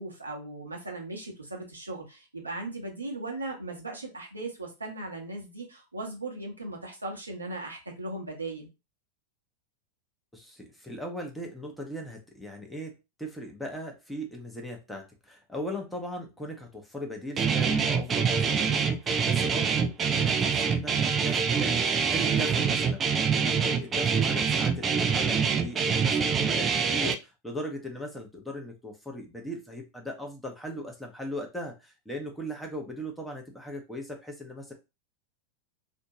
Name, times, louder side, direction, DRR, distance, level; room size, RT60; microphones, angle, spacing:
voice 1, 0.0-8.7 22.4-22.6, right 2 dB, 80° right, 0 dB, 0.8 m, -38 dB
voice 2, 10.3-34.7, equal, 5° left, 1 dB, 0.7 m, -38 dB
Guitar, 17.4-27.1, right 6 dB, 25° right, 0.3 m, -25 dB
2.5 x 2.1 x 2.8 m, 0.26 s
figure-of-eight pair, 90°, 0 cm